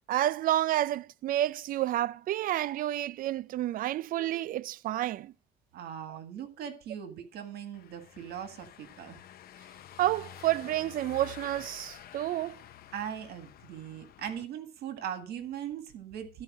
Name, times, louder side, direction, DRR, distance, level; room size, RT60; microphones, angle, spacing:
voice 1, 0.1-5.3 6.1-6.2 10.0-12.6, right 14 dB, 55° right, 0.4 m, -30 dB
voice 2, 5.7-9.2 12.9-16.4, right 9 dB, 70° right, 1.8 m, -40 dB
Car passing by / Engine, 7.7-14.5, left 11 dB, 65° left, 0.8 m, -50 dB
13.0 x 4.6 x 6.1 m
cardioid pair, 110°, 17 cm